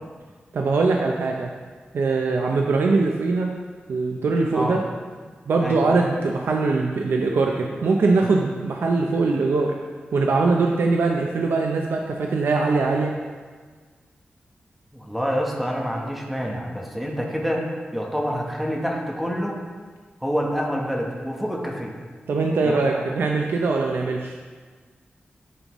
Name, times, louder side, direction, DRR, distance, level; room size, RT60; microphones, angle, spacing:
voice 1, 0.5-1.5 1.9-3.5 3.9-4.8 5.5-9.7 10.1-13.1 22.3-24.3, right 3 dB, 85° right, 1 dB, 0.5 m, -22 dB
voice 2, 14.9-17.7 17.9-19.6 20.2-21.9 22.6-23.0, equal, 5° right, -1 dB, 1.0 m, -27 dB
11.0 x 5.2 x 3.0 m, 1.5 s
wide cardioid pair, 150°, 4 cm